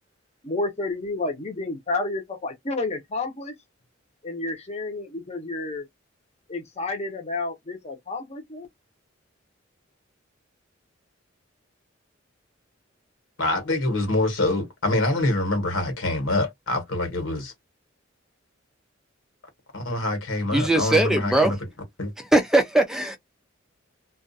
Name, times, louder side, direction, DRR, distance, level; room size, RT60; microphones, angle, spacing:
voice 1, 0.4-3.5 4.2-5.9 6.5-8.7, left 2 dB, 35° left, 0.8 m, -30 dB
voice 2, 13.4-17.5 19.7-21.6 22.0-22.1, left 2 dB, 75° left, 1.4 m, -25 dB
voice 3, 20.5-21.5 22.2-23.2, right 2 dB, 5° right, 0.4 m, -20 dB
2.4 x 2.3 x 2.5 m
head